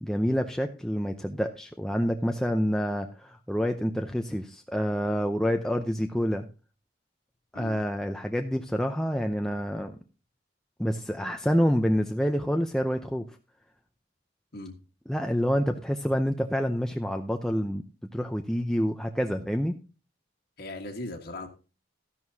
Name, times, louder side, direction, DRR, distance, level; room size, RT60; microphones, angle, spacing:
voice 1, 0.0-6.5 7.5-10.0 10.8-13.3 15.1-17.8 18.1-19.7, equal, 5° left, 4 dB, 0.6 m, -27 dB
voice 2, 20.6-21.5, left 2 dB, 55° left, 2 dB, 1.6 m, -38 dB
13.0 x 11.0 x 2.8 m, 0.33 s
head